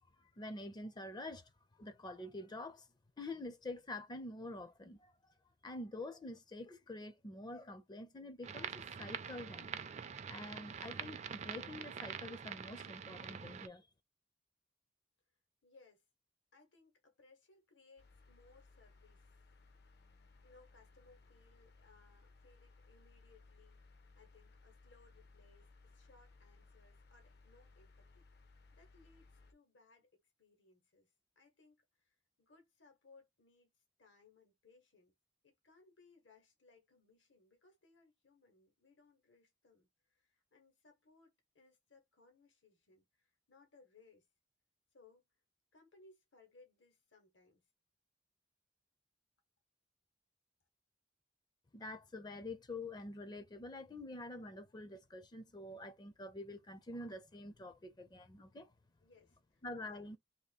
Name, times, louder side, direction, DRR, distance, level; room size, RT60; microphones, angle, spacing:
voice 1, 0.4-1.5 1.8-2.9 3.2-5.3 5.6-8.7 9.0-9.7 10.3-13.9 51.7-58.7 59.6-60.2, left 2 dB, 25° left, 0.4 m, -47 dB
sound 1, 8.4-13.7, right 7 dB, 40° right, 0.4 m, -45 dB
voice 2, 15.6-16.0 16.5-19.3 20.1-23.8 24.1-35.1 35.4-44.3 44.9-45.2 45.7-47.6 59.0-60.2, left 3 dB, 85° left, 1.3 m, -66 dB
sound 2, 18.0-29.5, left 3 dB, 60° left, 0.6 m, -63 dB
2.9 x 2.7 x 4.0 m
head